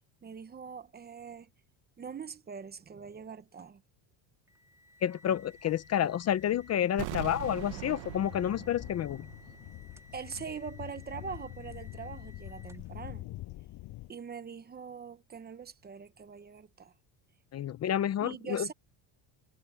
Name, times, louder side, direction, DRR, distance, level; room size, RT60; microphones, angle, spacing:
voice 1, 0.2-1.5 2.0-3.8 10.1-13.3 14.1-16.9 18.2-18.7, right 6 dB, 20° right, 1.0 m, -43 dB
sound 1, 4.5-13.0, left 1 dB, 5° right, 2.0 m, -58 dB
voice 2, 5.0-9.3 17.5-18.7, left 10 dB, 35° left, 0.7 m, -30 dB
sound 2, 5.4-14.1, left 17 dB, 65° left, 7.2 m, -46 dB
sound 3, 7.0-9.9 10.1-10.2, right 19 dB, 80° right, 1.4 m, -42 dB
cardioid pair, 160°, 44 cm